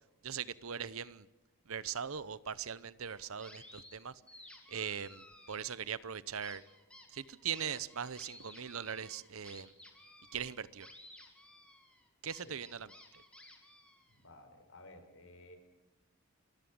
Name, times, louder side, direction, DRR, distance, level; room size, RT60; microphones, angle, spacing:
voice 1, 0.2-1.3 1.7-4.1 4.7-6.6 7.1-9.7 10.3-10.9 12.2-13.2, right 7 dB, 80° right, 17 dB, 0.8 m, -40 dB
sound 1, 3.1-4.0 4.3-6.0 6.4-14.2, left 1 dB, 5° left, 2.4 m, -56 dB
voice 2, 14.1-15.6, left 1 dB, 70° left, 7 dB, 4.7 m, -55 dB
27.5 x 14.0 x 8.8 m, 1.0 s
head